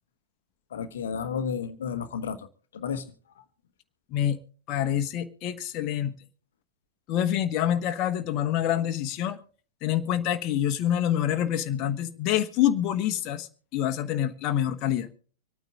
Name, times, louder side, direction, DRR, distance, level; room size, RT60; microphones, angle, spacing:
voice 1, 0.7-2.5 2.7-3.0 3.4-3.5 4.8-4.9, left 6 dB, 65° left, 9 dB, 1.1 m, -32 dB
voice 2, 4.7-6.1 7.1-9.4 9.8-15.1, left 11 dB, 35° left, 7 dB, 1.3 m, -26 dB
26.0 x 9.2 x 3.7 m, 0.40 s
figure-of-eight pair, 100°, 0 cm